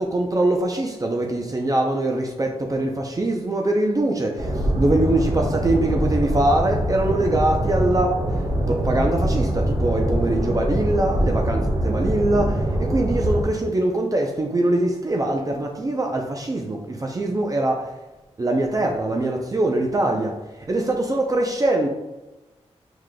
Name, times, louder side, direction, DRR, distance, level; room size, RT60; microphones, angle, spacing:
voice 1, 0.1-2.9 3.2-4.3 4.8-8.1 8.8-9.5 9.8-12.5 12.9-16.8 17.2-17.7 18.4-20.3 20.7-21.9, right 1 dB, 30° right, 2 dB, 0.5 m, -22 dB
sound 1, 4.4-13.4, right 1 dB, 60° right, 1.1 m, -23 dB
4.8 x 3.7 x 2.2 m, 1.1 s
cardioid pair, 75°, 11 cm